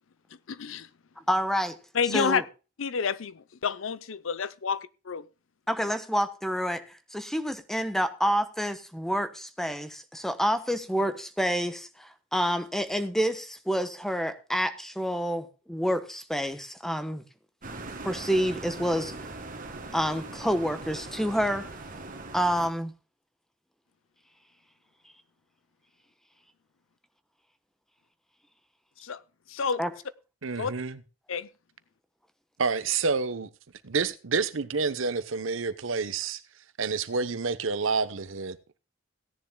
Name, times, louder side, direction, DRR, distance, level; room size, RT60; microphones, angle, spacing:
voice 1, 0.5-0.9 1.9-2.4 2.8-5.2 29.0-29.2 29.5-29.8 30.6-30.7 31.3-31.5, left 6 dB, 75° left, 0.7 m, -29 dB
voice 2, 1.2-1.8 2.1-2.4 5.7-17.2 18.0-19.1 19.9-21.7 22.3-22.9 29.8-29.9, equal, ahead, 1.1 m, -28 dB
sound 1, 17.6-22.7, right 2 dB, 45° right, 2.0 m, -40 dB
voice 3, 30.4-31.0 32.6-33.5 33.8-36.4 36.8-38.6, right 4 dB, 75° right, 0.9 m, -28 dB
17.0 x 10.5 x 2.3 m
head